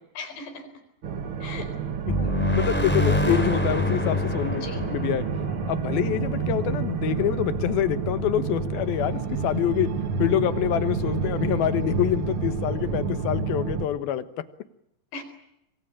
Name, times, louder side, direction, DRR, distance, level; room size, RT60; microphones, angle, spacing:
voice 1, 0.2-0.7 1.4-1.8 4.5-5.0 15.1-15.2, left 4 dB, 85° left, 9 dB, 6.5 m, -38 dB
sound 1, 1.0-13.9, right 5 dB, 80° right, 1.2 m, -29 dB
sound 2, 2.0-6.7, left 1 dB, 5° left, 3.3 m, -26 dB
voice 2, 2.2-4.6 4.9-5.2 5.7-9.9 10.2-14.3, left 11 dB, 70° left, 12 dB, 2.8 m, -26 dB
26.5 x 22.5 x 8.8 m, 0.81 s
omnidirectional pair, 5.0 m